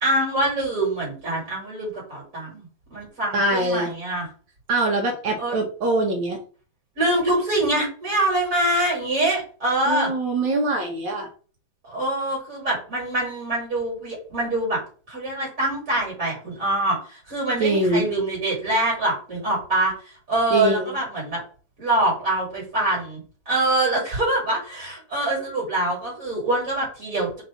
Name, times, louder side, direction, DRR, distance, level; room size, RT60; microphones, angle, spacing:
voice 1, 0.0-4.3 5.4-5.6 7.0-10.1 11.8-14.8 15.1-21.4 21.8-23.2 23.5-27.4, right 1 dB, 45° right, -5 dB, 2.1 m, -24 dB
voice 2, 3.3-3.9 4.7-6.4 9.9-11.3 17.6-18.1 20.5-20.9, right 2 dB, 75° right, 0 dB, 1.6 m, -23 dB
3.8 x 2.6 x 4.5 m, 0.39 s
omnidirectional pair, 2.1 m